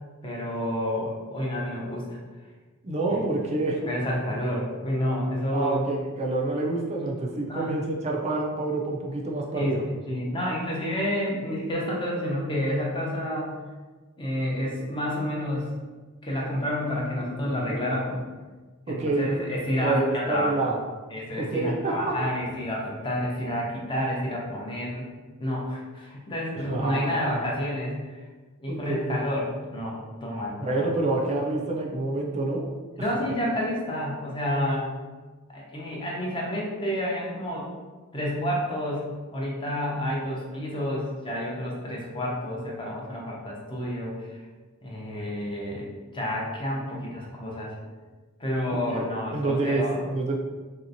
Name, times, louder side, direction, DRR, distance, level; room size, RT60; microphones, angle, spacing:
voice 1, 0.2-2.2 3.1-3.2 3.9-5.8 7.5-7.8 9.5-9.7 10.1-13.6 14.2-15.7 16.2-18.2 18.9-20.7 21.1-25.1 25.4-28.2 28.6-30.9 33.0-34.9 35.5-37.7 38.1-44.4 44.8-47.8 48.4-50.0, left 1 dB, 20° left, -3 dB, 0.6 m, -29 dB
voice 2, 2.8-3.9 5.5-9.8 18.9-19.4 19.8-20.8 21.4-22.3 26.5-27.5 28.7-29.2 30.6-32.7 33.0-33.1 48.9-49.1 49.3-50.4, right 2 dB, 30° right, -1 dB, 0.4 m, -27 dB
3.3 x 2.8 x 2.6 m, 1.3 s
head